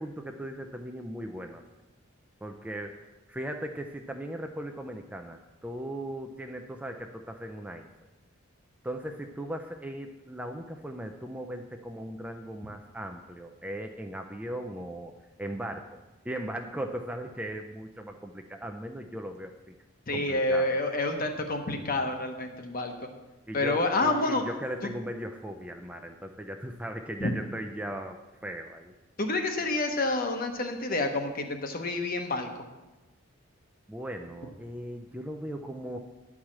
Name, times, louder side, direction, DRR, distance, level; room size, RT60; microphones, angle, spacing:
voice 1, 0.0-1.6 2.4-7.9 8.8-16.0 16.2-19.7 20.1-20.8 23.5-28.9 33.9-36.0, right 1 dB, 5° right, 4 dB, 0.4 m, -38 dB
voice 2, 20.1-23.1 23.5-24.4 27.2-27.3 29.2-32.5, left 2 dB, 45° left, 5 dB, 1.0 m, -28 dB
10.5 x 4.8 x 7.3 m, 1.1 s
head